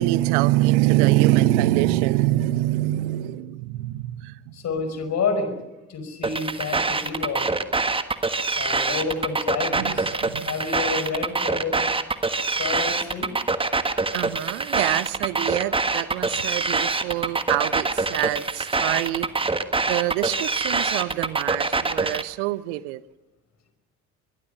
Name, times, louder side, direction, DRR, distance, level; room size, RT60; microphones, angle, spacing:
voice 1, 0.0-4.5 9.8-10.5 14.1-19.5 19.9-23.0, right 16 dB, 60° right, 1.0 m, -24 dB
voice 2, 4.5-5.6 5.9-7.5 8.6-10.1 10.5-11.8 12.6-13.3, left 4 dB, 40° left, 5.3 m, -29 dB
sound 1, 6.2-22.2, right 3 dB, 15° right, 1.5 m, -25 dB
23.0 x 23.0 x 6.8 m
figure-of-eight pair, 60°, 41 cm